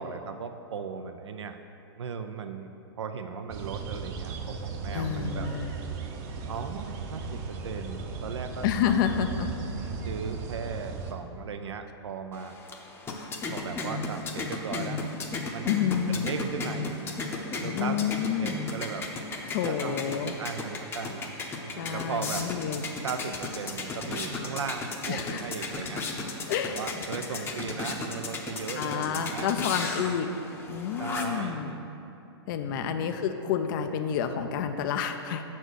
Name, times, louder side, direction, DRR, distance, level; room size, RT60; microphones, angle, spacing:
voice 1, 0.0-1.6 2.0-2.7 3.0-5.5 6.5-9.0 10.0-12.5 13.5-15.0 15.5-17.2 17.6-19.1 19.6-21.3 21.6-22.5 23.0-26.0 26.7-29.5 31.0-31.8 32.7-33.2, right 6 dB, 85° right, 7 dB, 0.4 m, -37 dB
sound 1, 3.5-11.1, right 4 dB, 40° right, 0.7 m, -36 dB
voice 2, 4.9-5.7 8.6-9.5 15.7-16.2 17.7-18.6 19.5-20.3 21.7-22.8 25.1-25.4 26.5-26.8 27.3-27.4 28.8-30.3 30.7-31.8 32.5-35.4, left 8 dB, 50° left, 7 dB, 0.4 m, -29 dB
sound 2, 12.3-31.5, left 3 dB, 15° left, 0.7 m, -35 dB
6.7 x 4.3 x 6.2 m, 2.9 s
hypercardioid pair, 125°, 14 cm